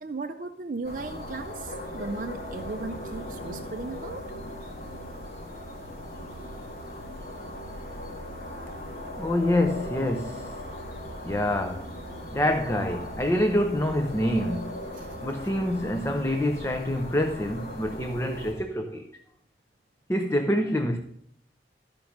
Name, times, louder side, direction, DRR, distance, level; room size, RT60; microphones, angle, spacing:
voice 1, 0.0-4.2 8.7-8.8 14.9-15.1, right 3 dB, 50° right, 0.5 m, -36 dB
sound 1, 0.8-18.5, left 1 dB, 55° left, 2.5 m, -38 dB
voice 2, 9.2-10.6 11.2-11.9 12.3-14.8 15.2-19.1 20.1-21.0, left 1 dB, 15° left, 0.6 m, -26 dB
13.0 x 5.2 x 5.9 m
head